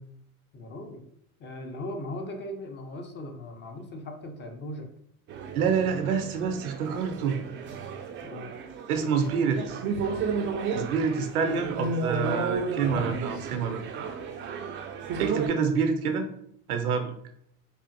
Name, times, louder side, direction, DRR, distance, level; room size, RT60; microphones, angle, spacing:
voice 1, 0.5-1.1 1.4-4.9 8.2-8.5 11.5-11.7 15.7-15.8, left 1 dB, 25° left, 4 dB, 0.5 m, -38 dB
sound 1, 5.3-15.5, right 5 dB, 30° right, 0.4 m, -33 dB
voice 2, 5.5-7.4 8.9-9.8 10.7-13.8 15.2-16.3 16.7-17.1, right 6 dB, 80° right, 7 dB, 0.6 m, -27 dB
3.4 x 2.4 x 2.6 m, 0.70 s
hypercardioid pair, 75°, 43 cm